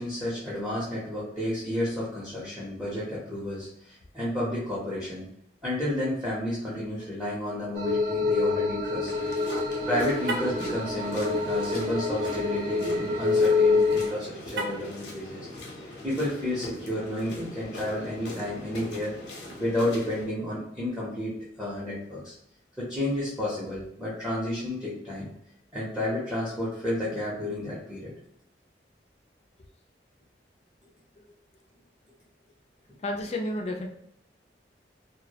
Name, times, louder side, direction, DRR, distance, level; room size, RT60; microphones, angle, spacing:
voice 1, 0.0-5.3 5.6-9.1 9.9-15.5 16.0-19.1 19.6-22.3 22.8-25.3 25.7-28.1, left 1 dB, 5° right, -8 dB, 0.6 m, -31 dB
sound 1, 7.7-14.1, left 3 dB, 45° right, 0.7 m, -26 dB
sound 2, 9.0-20.2, left 2 dB, 85° left, 0.7 m, -41 dB
Car, 10.2-10.6 14.5-15.0, right 2 dB, 80° right, 0.4 m, -33 dB
voice 2, 33.0-33.9, left 1 dB, 35° left, 2 dB, 0.4 m, -31 dB
2.2 x 2.0 x 2.8 m, 0.74 s
head